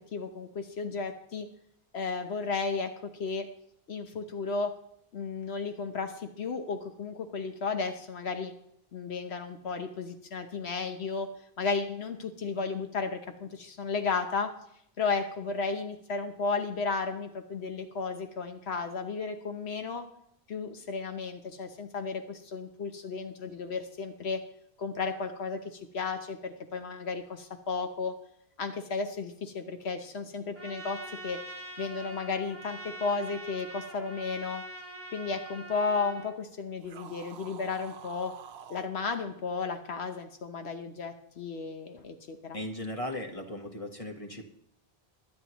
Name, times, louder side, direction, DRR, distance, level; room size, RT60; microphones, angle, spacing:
voice 1, 0.1-1.5 1.9-2.9 3.2-3.4 3.9-4.7 5.1-8.5 8.9-11.3 11.6-14.5 15.0-20.1 20.5-24.4 24.8-28.1 28.6-31.4 31.8-34.6 35.1-38.3 38.7-42.6, left 4 dB, 85° left, 6 dB, 1.2 m, -33 dB
Trumpet, 30.5-36.3, right 1 dB, 15° right, 1.8 m, -44 dB
sound 1, 36.8-38.9, right 8 dB, 80° right, 1.0 m, -48 dB
voice 2, 42.5-44.5, left 1 dB, 35° left, 1 dB, 1.3 m, -37 dB
22.5 x 9.4 x 3.0 m, 0.73 s
omnidirectional pair, 1.1 m